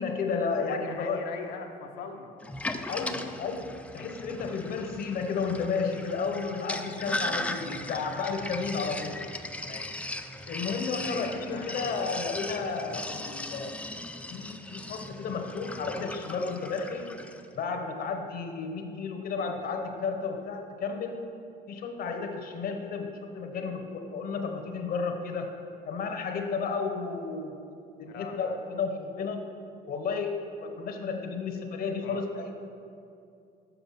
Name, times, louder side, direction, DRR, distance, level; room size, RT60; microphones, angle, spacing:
voice 1, 0.0-1.3 2.9-9.2 10.5-13.8 14.3-17.1 17.5-21.2 21.7-25.5 25.9-27.5 28.0-29.4 29.9-32.5, left 4 dB, 60° left, 5 dB, 0.9 m, -32 dB
voice 2, 0.7-2.3 7.9-8.0 9.6-10.0 11.0-12.6 19.4-19.6 28.1-28.4 32.0-32.2, left 5 dB, 85° left, 3 dB, 0.9 m, -42 dB
Sink (filling or washing), 2.4-17.4, left 2 dB, 5° left, 0.4 m, -38 dB
7.1 x 5.6 x 5.6 m, 2.6 s
cardioid pair, 110°, 17 cm